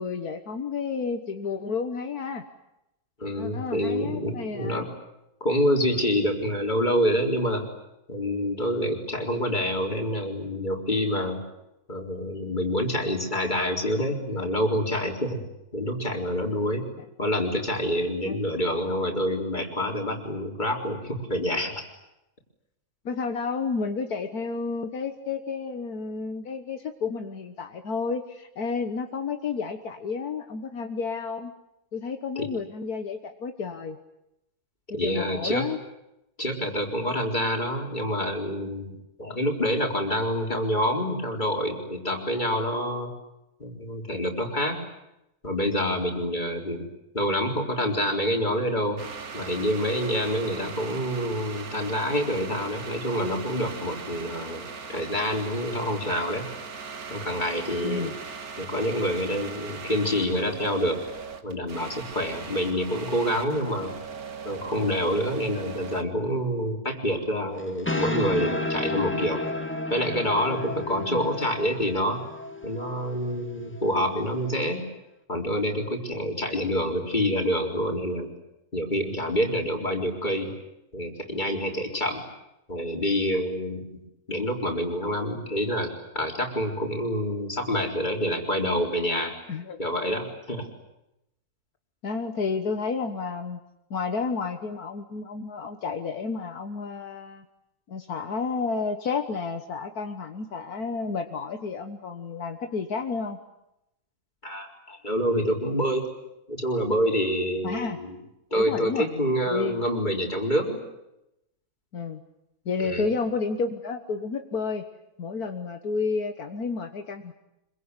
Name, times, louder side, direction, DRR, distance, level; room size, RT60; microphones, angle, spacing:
voice 1, 0.0-2.4 3.3-4.9 18.3-18.4 23.1-31.5 31.9-34.0 35.0-35.8 50.5-50.7 57.8-58.1 71.0-71.3 89.5-89.8 92.0-93.6 93.9-97.5 97.9-103.4 107.6-108.0 108.6-109.1 109.5-109.8 111.9-112.2 112.7-114.8 115.2-117.3, left 4 dB, 75° left, 6 dB, 1.9 m, -31 dB
voice 2, 3.2-4.9 5.4-7.7 8.1-11.4 11.9-15.4 15.7-16.9 17.2-21.8 32.4-32.5 34.9-35.7 36.4-43.1 43.6-44.8 45.4-46.9 47.1-49.0 49.3-54.7 54.9-56.5 57.1-58.1 58.6-61.0 61.4-64.0 64.4-69.5 69.9-72.2 72.6-74.9 75.3-78.3 78.7-80.5 80.9-82.2 82.7-83.8 84.3-89.3 89.8-90.7 104.4-106.1 106.5-108.1 108.5-110.8 112.8-113.1, equal, 30° left, 2 dB, 4.3 m, -27 dB
sound 1, 49.0-66.0, right 5 dB, 70° right, 2.1 m, -39 dB
sound 2, 67.6-74.7, left 2 dB, 10° left, 1.9 m, -33 dB
26.0 x 23.5 x 9.8 m, 0.88 s
omnidirectional pair, 1.6 m